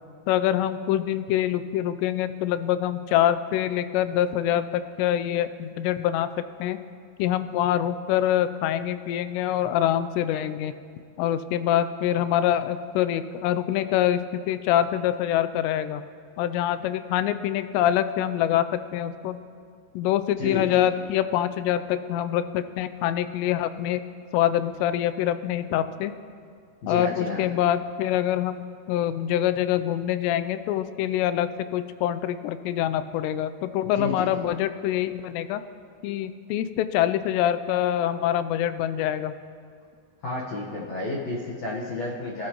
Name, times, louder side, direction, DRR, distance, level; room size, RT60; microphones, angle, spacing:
voice 1, 0.3-6.3 6.6-6.8 7.2-10.7 11.2-14.2 14.5-16.0 16.4-18.7 18.9-19.4 20.0-24.0 24.3-26.1 26.9-35.6 36.0-39.3, left 11 dB, 85° left, 11 dB, 2.7 m, -25 dB
voice 2, 20.4-20.7 26.8-27.5 33.8-34.3 40.2-42.5, left 2 dB, 65° left, -4 dB, 1.7 m, -31 dB
24.5 x 12.5 x 3.0 m, 2.2 s
omnidirectional pair, 4.9 m